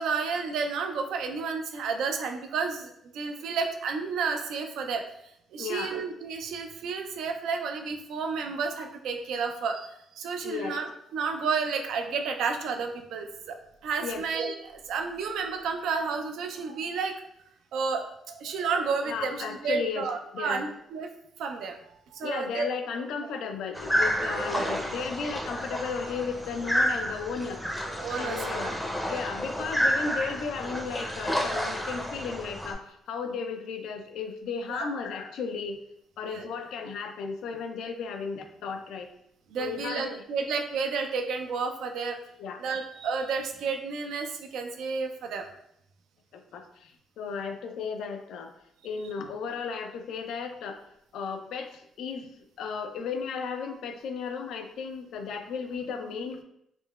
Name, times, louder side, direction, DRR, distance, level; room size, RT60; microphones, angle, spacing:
voice 1, 0.0-5.0 5.5-9.9 10.2-17.1 17.7-21.1 21.4-21.8 22.1-22.7 24.6-24.8 27.9-28.4 34.7-34.9 36.2-36.5 39.5-42.2 42.6-45.5, right 5 dB, 80° right, 5 dB, 0.3 m, -31 dB
voice 2, 5.6-6.0 10.4-10.8 14.0-14.2 19.0-20.1 20.3-20.7 22.2-27.6 28.2-35.8 36.2-39.1 39.6-40.5 42.4-42.6 46.3-48.5 48.8-50.8 51.1-56.4, left 5 dB, 80° left, 6 dB, 0.3 m, -35 dB
sound 1, 23.7-32.7, equal, 5° left, 0.5 m, -30 dB
3.6 x 2.1 x 2.3 m, 0.75 s
cardioid pair, 90°, 0 cm